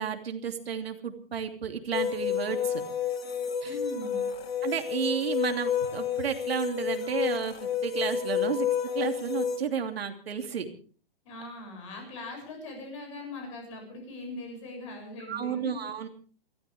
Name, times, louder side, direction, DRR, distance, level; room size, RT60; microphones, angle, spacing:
voice 1, 0.0-2.8 3.6-3.8 4.6-7.5 7.8-8.7 8.9-10.7 15.3-16.1, right 7 dB, 75° right, 5 dB, 2.9 m, -32 dB
sound 1, 1.9-9.6, left 8 dB, 80° left, 2.6 m, -30 dB
voice 2, 3.6-4.2 11.2-15.8, left 2 dB, 30° left, 3 dB, 7.5 m, -40 dB
29.5 x 14.0 x 3.5 m, 0.41 s
hypercardioid pair, 175°, 30 cm